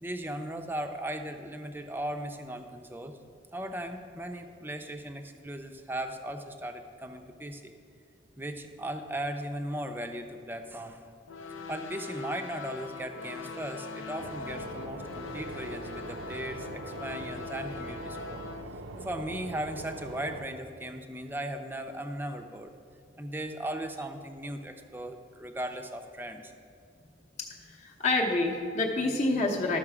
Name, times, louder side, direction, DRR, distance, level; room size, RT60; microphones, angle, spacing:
voice 1, 0.0-3.2 3.5-7.7 8.4-11.1 11.7-18.4 19.0-22.7 23.2-26.5, right 1 dB, 10° right, 6 dB, 0.5 m, -37 dB
sound 1, 11.3-18.6, left 4 dB, 90° left, 0.6 m, -41 dB
sound 2, 14.2-20.4, right 2 dB, 75° right, 0.6 m, -42 dB
voice 2, 27.4-29.8, left 2 dB, 35° left, -1 dB, 0.8 m, -28 dB
12.0 x 6.5 x 4.9 m, 2.3 s
head